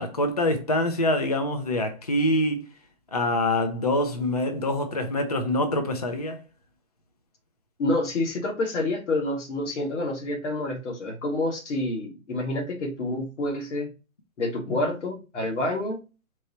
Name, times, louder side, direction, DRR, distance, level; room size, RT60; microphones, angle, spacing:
voice 1, 0.0-2.6 3.1-6.4, left 1 dB, 30° left, 0.4 m, -25 dB
voice 2, 7.8-13.9 14.4-16.0, left 2 dB, 55° left, 1.8 m, -28 dB
4.6 x 2.8 x 4.1 m
hypercardioid pair, 160°, 43 cm